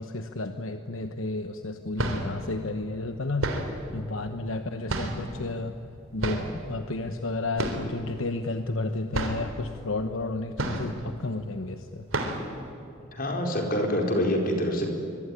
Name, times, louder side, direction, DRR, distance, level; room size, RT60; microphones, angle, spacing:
voice 1, 0.0-5.7 6.1-12.1, left 2 dB, 70° left, 8 dB, 1.1 m, -32 dB
sound 1, 1.0-1.1 1.8-2.4 3.4-3.8 4.9-5.4 6.2-6.6 7.6-8.0 8.3-8.4 8.8-8.9 9.1-9.5 10.6-11.1 11.5-11.7 12.1-12.5, right 1 dB, 75° right, 3.6 m, -30 dB
voice 2, 13.1-14.9, equal, 45° left, 2 dB, 4.5 m, -26 dB
24.5 x 23.0 x 9.9 m, 2.7 s
head